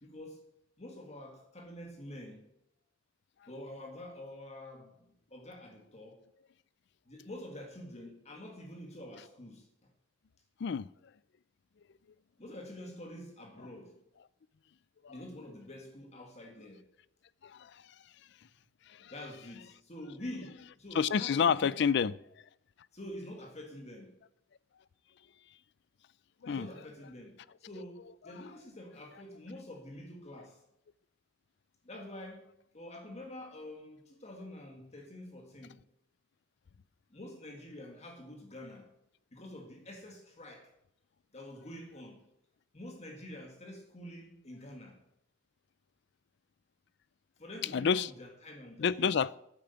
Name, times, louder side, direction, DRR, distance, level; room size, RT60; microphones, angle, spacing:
voice 1, 0.0-2.5 3.5-6.2 7.1-9.7 12.4-14.0 15.1-16.9 19.1-21.7 22.9-24.2 26.5-30.6 31.8-32.5 32.7-35.8 37.1-38.9 39.3-40.7 41.3-42.3 42.7-45.0 47.4-49.1, left 1 dB, 35° left, 1.8 m, -47 dB
voice 2, 17.4-17.9 18.9-19.1 20.9-22.1 26.4-26.7 47.7-48.1 48.8-49.4, left 6 dB, 60° left, 0.4 m, -29 dB
9.4 x 8.6 x 6.9 m
head